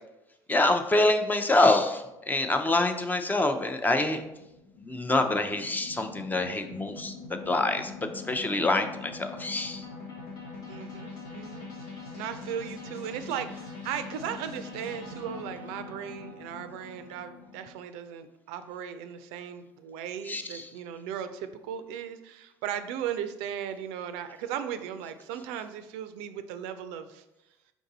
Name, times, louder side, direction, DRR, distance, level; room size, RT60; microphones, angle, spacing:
voice 1, 0.5-4.2 4.8-7.1 7.5-7.9 8.3-9.9 20.3-20.7, left 2 dB, 15° left, 6 dB, 0.5 m, -26 dB
sound 1, 4.3-17.7, left 4 dB, 85° left, 1.1 m, -43 dB
voice 2, 10.7-11.7 12.2-27.2, right 9 dB, 75° right, 10 dB, 0.4 m, -37 dB
4.7 x 2.6 x 3.9 m, 0.94 s
hypercardioid pair, 75°, 10 cm